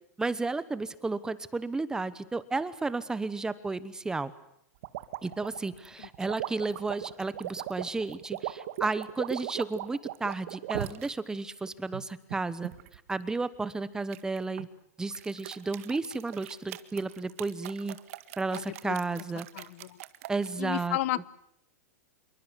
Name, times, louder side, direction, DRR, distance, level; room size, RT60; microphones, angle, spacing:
voice 1, 0.2-4.3 5.2-12.7 13.1-14.7 15.0-18.0 18.4-19.5 20.3-21.0, right 3 dB, 5° right, 16 dB, 1.0 m, -32 dB
sound 1, 4.8-11.1 11.7-13.0 14.1-14.7 15.1-20.5, right 15 dB, 55° right, 1.7 m, -39 dB
voice 2, 18.5-19.0 19.5-20.0 20.6-21.3, left 16 dB, 55° left, 20 dB, 1.0 m, -33 dB
26.5 x 23.0 x 8.2 m, 0.73 s
supercardioid pair, 150°, 9 cm